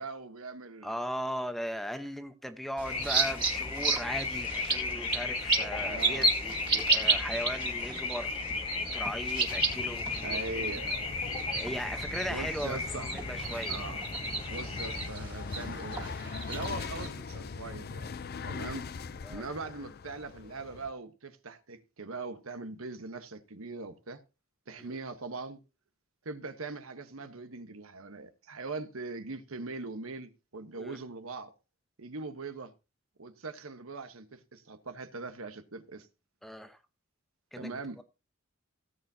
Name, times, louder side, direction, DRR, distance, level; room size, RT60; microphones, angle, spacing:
voice 1, 0.0-0.9 5.8-6.3 10.2-11.1 12.3-13.1 13.7-14.0 14.5-16.1 16.5-18.2 18.4-18.9 19.3-24.2 24.7-25.6 26.2-31.5 32.0-32.7 33.2-36.1 37.5-38.0, right 3 dB, 80° right, 1.2 m, -41 dB
voice 2, 0.8-8.3 8.9-10.7 11.5-13.9 19.2-19.4 24.8-25.0 30.8-31.0 36.4-36.8 37.5-38.0, equal, ahead, 0.9 m, -38 dB
sound 1, 2.8-15.1, left 4 dB, 25° left, 1.1 m, -36 dB
sound 2, 2.8-17.1, right 3 dB, 20° right, 2.0 m, -33 dB
sound 3, 9.5-20.9, left 5 dB, 45° left, 0.5 m, -42 dB
17.0 x 8.5 x 2.8 m
head